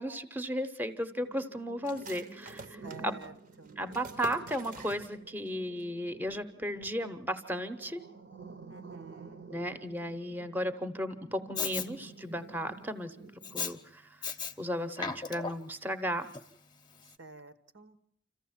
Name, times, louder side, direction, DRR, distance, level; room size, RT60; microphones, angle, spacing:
voice 1, 0.0-3.2 3.8-8.0 9.5-13.2 13.5-14.1 14.6-16.3, equal, 10° right, 10 dB, 0.8 m, -35 dB
sound 1, 1.1-13.6, right 3 dB, 70° right, 1.1 m, -50 dB
sound 2, 1.8-5.5 5.8-5.9 6.3-6.8, right 4 dB, 45° right, 0.8 m, -47 dB
voice 2, 2.8-3.8 8.7-9.5 17.2-18.0, right 4 dB, 90° right, 11 dB, 1.3 m, -50 dB
Respiratory sounds, 11.6-11.9 13.4-13.7 14.2-14.5 14.9-15.7 16.3-16.4, left 5 dB, 25° left, 0.8 m, -35 dB
27.0 x 14.5 x 7.3 m, 0.68 s
head